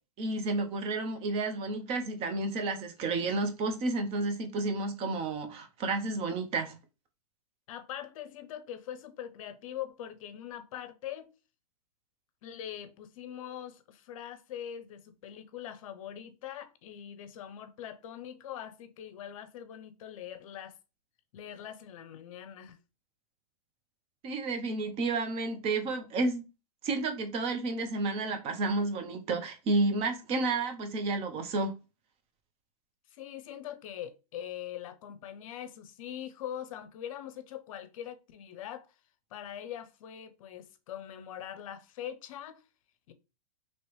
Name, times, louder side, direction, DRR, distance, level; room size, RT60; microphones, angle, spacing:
voice 1, 0.2-6.8 24.2-26.4 26.8-31.7, right 3 dB, 30° right, 0.7 m, -31 dB
voice 2, 7.7-11.3 12.4-20.8 21.3-22.8 33.1-38.9 39.3-42.6 43.1-43.2, left 10 dB, 60° left, 0.6 m, -42 dB
3.0 x 2.9 x 3.1 m
hypercardioid pair, 125°, 19 cm